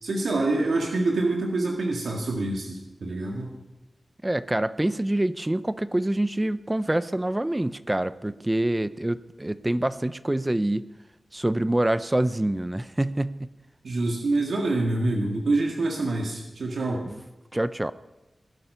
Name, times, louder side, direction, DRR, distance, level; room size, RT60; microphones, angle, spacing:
voice 1, 0.0-3.5 13.8-17.0, right 2 dB, 90° right, 0 dB, 1.9 m, -26 dB
voice 2, 4.2-10.9 11.3-13.5 17.0-17.2 17.5-17.9, right 1 dB, 20° right, 14 dB, 0.5 m, -26 dB
20.0 x 11.0 x 5.5 m, 1.0 s
wide cardioid pair, 70°, 0 cm